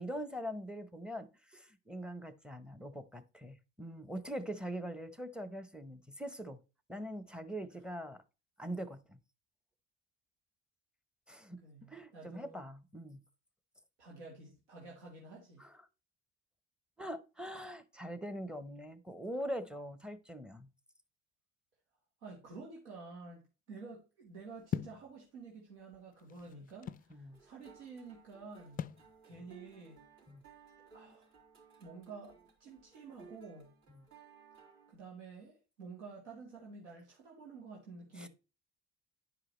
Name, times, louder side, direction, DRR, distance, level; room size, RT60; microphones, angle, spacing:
voice 1, 0.0-6.6 6.9-8.2 8.6-9.2 11.3-13.2 15.6-15.7 17.0-20.7 26.5-26.7 27.1-27.4 29.3-29.4 30.3-30.4 33.9-34.0 38.2-38.3, equal, 5° right, 0.8 m, -43 dB
voice 2, 11.6-12.6 14.0-15.6 22.2-28.9 29.2-30.0 30.9-31.3 31.8-33.7 34.9-38.3, right 4 dB, 85° right, 1.4 m, -50 dB
sound 1, 24.7-25.1 25.9-27.1 28.8-29.1, left 9 dB, 25° left, 0.3 m, -38 dB
sound 2, 27.3-34.9, right 6 dB, 55° right, 3.4 m, -60 dB
11.0 x 4.8 x 3.0 m
hypercardioid pair, 60°, 34 cm